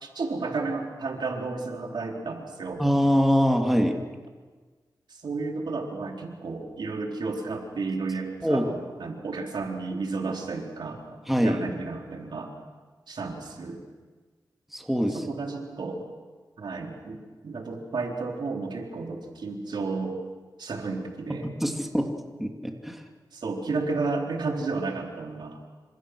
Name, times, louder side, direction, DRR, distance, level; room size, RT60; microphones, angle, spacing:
voice 1, 0.0-2.8 5.1-12.5 13.1-13.8 15.1-16.1 16.6-20.2 20.6-21.5 23.3-25.6, right 3 dB, 75° right, 1 dB, 4.1 m, -32 dB
voice 2, 2.8-4.0 8.4-8.7 11.3-11.6 14.7-15.2 21.6-22.1 22.4-23.0, equal, 5° right, 2 dB, 2.7 m, -23 dB
28.0 x 26.5 x 6.4 m, 1.4 s
wide cardioid pair, 95°, 8 cm